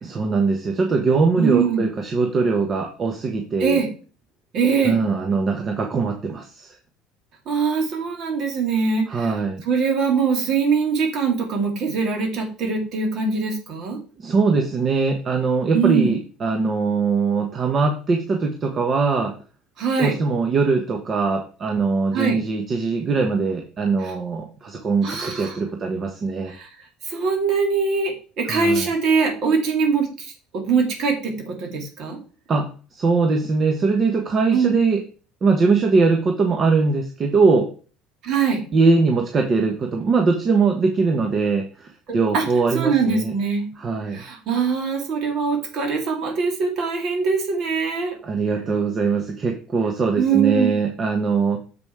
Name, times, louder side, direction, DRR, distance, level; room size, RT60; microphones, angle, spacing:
voice 1, 0.0-3.8 4.8-6.7 9.1-9.6 14.2-19.3 20.0-26.5 28.5-28.9 32.5-35.0 35.4-37.7 38.7-43.3 43.8-44.2 48.2-51.6, right 4 dB, 40° right, 4 dB, 1.2 m, -21 dB
voice 2, 1.4-1.9 3.6-3.9 4.5-5.0 7.5-9.3 9.6-14.0 15.7-16.2 19.8-20.1 22.1-22.4 24.0-24.1 25.0-25.6 26.5-26.7 27.1-32.2 34.5-34.7 38.2-38.6 42.1-42.4 42.7-43.7 44.1-48.1 50.2-50.7, right 5 dB, 55° right, 2 dB, 3.0 m, -22 dB
7.0 x 5.2 x 4.8 m, 0.38 s
hypercardioid pair, 75°, 0 cm